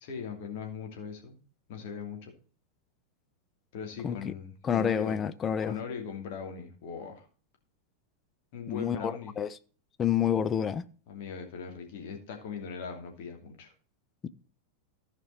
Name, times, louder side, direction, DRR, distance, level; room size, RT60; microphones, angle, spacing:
voice 1, 0.0-1.4 1.7-2.3 3.7-5.2 5.6-7.3 8.5-9.3 11.1-13.7, left 6 dB, 50° left, 2.6 m, -40 dB
voice 2, 4.6-5.7 8.7-9.5 10.0-10.8 14.2-14.3, left 8 dB, 25° left, 0.6 m, -29 dB
15.0 x 5.3 x 4.2 m
figure-of-eight pair, 90°, 0 cm